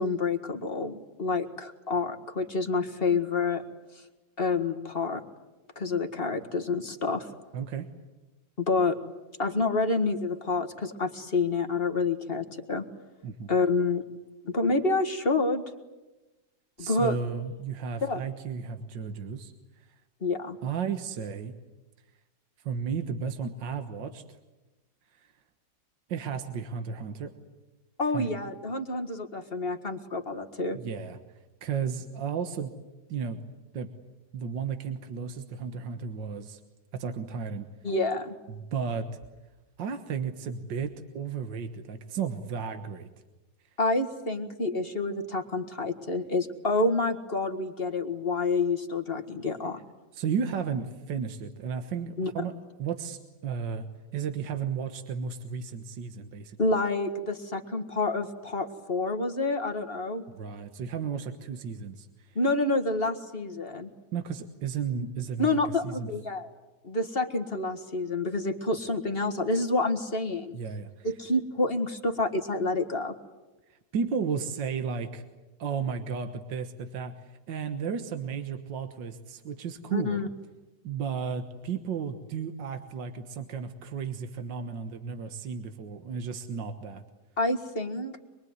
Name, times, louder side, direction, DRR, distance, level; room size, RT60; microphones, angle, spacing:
voice 1, 0.0-3.6 4.4-5.2 5.8-7.3 8.6-8.9 9.4-12.8 13.5-14.0 14.4-15.6 16.8-17.2 18.0-18.2 20.2-20.6 28.0-30.8 37.8-38.3 43.8-49.8 52.2-52.3 56.6-60.2 62.4-63.9 65.4-66.5 66.8-70.6 71.0-73.1 79.9-80.3 87.4-88.2, left 3 dB, 30° left, 5 dB, 1.9 m, -28 dB
voice 2, 7.5-7.9 13.2-13.5 16.8-19.5 20.6-21.6 22.6-24.2 25.2-25.3 26.1-27.3 28.1-28.3 30.7-31.2 31.6-32.7 33.1-33.4 33.7-33.9 34.3-36.6 36.9-37.7 38.5-39.1 39.8-43.1 50.1-52.5 52.8-53.8 54.1-56.6 60.3-62.4 64.1-66.1 70.5-71.1 73.7-75.2 75.6-80.2 80.8-87.0, right 6 dB, 75° right, 7 dB, 2.0 m, -34 dB
25.0 x 22.5 x 9.6 m, 1.1 s
omnidirectional pair, 2.0 m